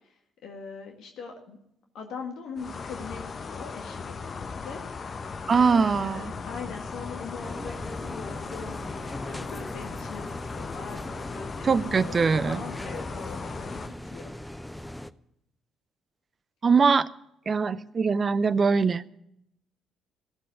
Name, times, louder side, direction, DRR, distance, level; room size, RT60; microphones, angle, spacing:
voice 1, 0.4-1.6 1.9-4.8 5.6-14.3, left 5 dB, 65° left, 2 dB, 1.9 m, -41 dB
sound 1, 2.6-13.9, left 5 dB, 45° left, 0.9 m, -38 dB
voice 2, 5.5-6.3 11.6-12.6 16.6-17.1 17.5-19.1, right 5 dB, 40° right, 17 dB, 0.6 m, -22 dB
sound 2, 7.4-15.1, left 1 dB, 5° left, 0.6 m, -39 dB
16.0 x 7.6 x 9.2 m, 0.79 s
hypercardioid pair, 45°, 0 cm